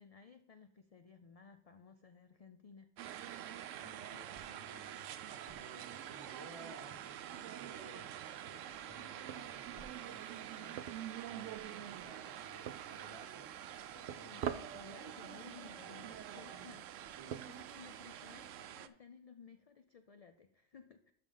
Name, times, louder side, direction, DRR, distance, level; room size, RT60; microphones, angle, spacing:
voice 1, 0.0-3.8 4.1-4.6 14.2-21.1, left 5 dB, 60° left, 8 dB, 0.4 m, -58 dB
sound 1, 3.0-18.9, right 11 dB, 85° right, 0.9 m, -47 dB
voice 2, 3.7-15.2 15.8-16.8 17.1-17.4, right 2 dB, 25° right, 1 dB, 1.2 m, -58 dB
sound 2, 9.3-18.6, right 8 dB, 60° right, 0.7 m, -49 dB
12.5 x 5.7 x 3.8 m, 0.67 s
omnidirectional pair, 1.3 m